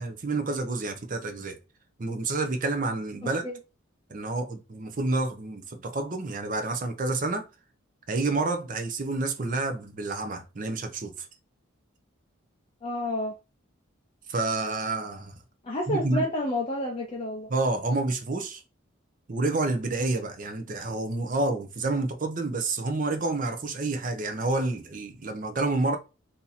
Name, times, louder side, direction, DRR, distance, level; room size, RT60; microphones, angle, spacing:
voice 1, 0.0-1.6 2.0-3.5 4.1-7.4 8.1-11.3 14.3-15.4 15.9-16.2 17.5-18.6 19.3-26.0, right 2 dB, 40° right, 0.6 m, -29 dB
voice 2, 12.8-13.3 15.6-17.5, left 1 dB, 25° left, 0.6 m, -30 dB
2.8 x 2.7 x 3.9 m
head